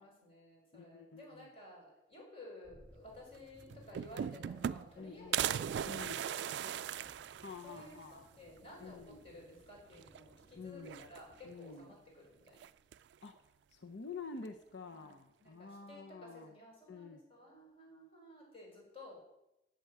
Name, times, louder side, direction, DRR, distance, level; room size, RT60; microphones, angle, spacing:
voice 1, 0.0-6.9 7.6-12.7 14.9-15.1 15.4-19.2, left 1 dB, 35° left, -2 dB, 4.5 m, -54 dB
voice 2, 0.7-1.5 5.0-5.5 5.8-6.3 7.4-8.3 8.8-9.2 10.6-11.1 11.4-12.0 13.2-13.3 13.7-16.5 16.9-17.2, left 4 dB, 90° left, 6 dB, 0.7 m, -48 dB
sound 1, 2.6-11.5, equal, 60° left, 3.2 m, -63 dB
sound 2, 3.3-3.4 3.7-5.0 5.3-7.9 8.3-8.4 8.7-8.8 9.9-10.4 10.8-11.5 12.6-13.1, right 9 dB, 75° right, 0.3 m, -38 dB
8.1 x 7.9 x 7.7 m, 0.89 s
head